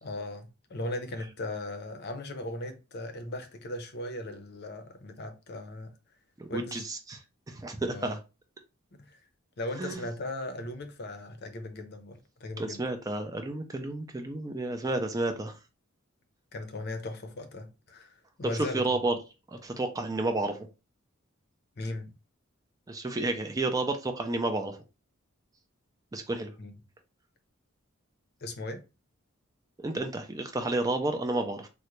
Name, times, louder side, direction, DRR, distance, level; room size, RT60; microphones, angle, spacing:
voice 1, 0.0-5.9 6.5-6.8 7.8-8.1 9.0-9.2 9.6-12.8 16.5-19.0 21.8-22.1 26.6-26.8 28.4-28.8, left 1 dB, 50° left, 0.6 m, -38 dB
voice 2, 6.4-7.2 7.5-8.2 9.8-10.0 12.6-15.6 18.7-19.1 19.5-20.6 22.9-24.8 26.1-26.5 29.8-31.7, right 2 dB, 15° right, 0.4 m, -31 dB
3.7 x 2.1 x 3.0 m
head